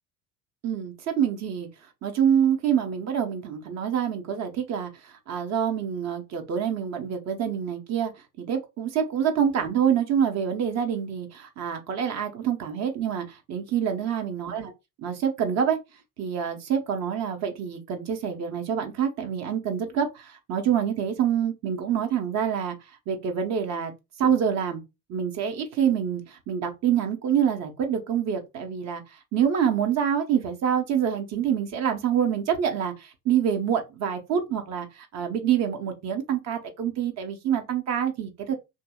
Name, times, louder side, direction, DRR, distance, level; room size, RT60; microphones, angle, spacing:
voice 1, 0.6-1.7 2.0-8.1 8.4-14.7 15.0-15.8 16.2-22.8 23.1-23.9 24.2-24.8 25.1-38.5, right 8 dB, 35° right, 0.8 m, -26 dB
2.7 x 2.7 x 2.2 m
figure-of-eight pair, 70°, 44 cm